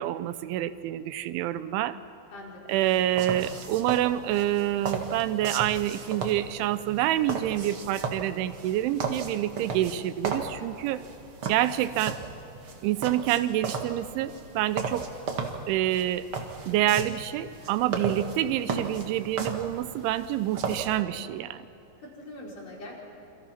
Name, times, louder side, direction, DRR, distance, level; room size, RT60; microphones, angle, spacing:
voice 1, 0.0-2.0 2.7-11.0 11.5-12.2 12.8-15.1 15.7-16.3 16.7-21.6, right 13 dB, 85° right, 13 dB, 3.2 m, -27 dB
sound 1, 2.7-21.0, right 4 dB, 65° right, 1.3 m, -36 dB
voice 2, 2.9-3.5 22.0-23.0, left 1 dB, 35° left, -3 dB, 5.4 m, -43 dB
28.5 x 26.5 x 5.9 m, 2.8 s
omnidirectional pair, 5.4 m